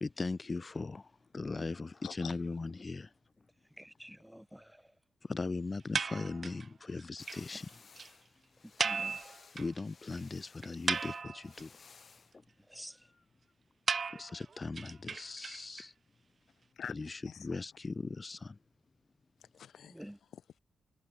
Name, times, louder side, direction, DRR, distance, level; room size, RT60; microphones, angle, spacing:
voice 1, 0.0-3.1 5.2-7.8 9.5-11.8 12.3-12.4 13.0-13.1 14.0-15.9 16.9-18.6, left 3 dB, 30° left, 0.8 m, -39 dB
voice 2, 2.0-2.4 16.8-17.6 19.4-20.6, left 8 dB, 80° left, 3.9 m, -48 dB
voice 3, 3.8-4.8 8.8-9.2 12.7-13.0 19.9-20.2, equal, 5° right, 0.9 m, -49 dB
sound 1, 5.9-6.7 7.0-7.1 7.3-7.4 7.7-7.8 8.0-8.1 8.8-9.8 10.1-10.2 10.6-11.6 13.9-15.8, right 5 dB, 45° right, 0.7 m, -35 dB
sound 2, 7.2-12.3, left 5 dB, 45° left, 3.1 m, -58 dB
wide cardioid pair, 120°, 0 cm